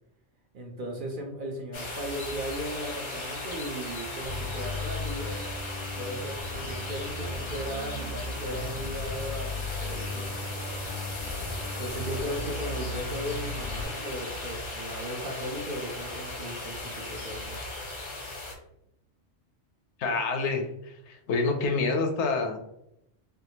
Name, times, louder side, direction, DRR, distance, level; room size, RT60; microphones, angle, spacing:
voice 1, 0.5-5.4 5.9-10.3 11.8-17.6, right 1 dB, 55° right, 0 dB, 0.7 m, -37 dB
sound 1, 1.7-18.5, left 2 dB, 35° left, 0.5 m, -37 dB
Bass guitar, 4.2-13.8, left 3 dB, 85° right, 1.4 m, -37 dB
voice 2, 20.0-20.7 21.1-22.6, left 3 dB, 75° left, 5 dB, 0.8 m, -27 dB
3.4 x 2.3 x 2.8 m, 0.78 s
omnidirectional pair, 1.2 m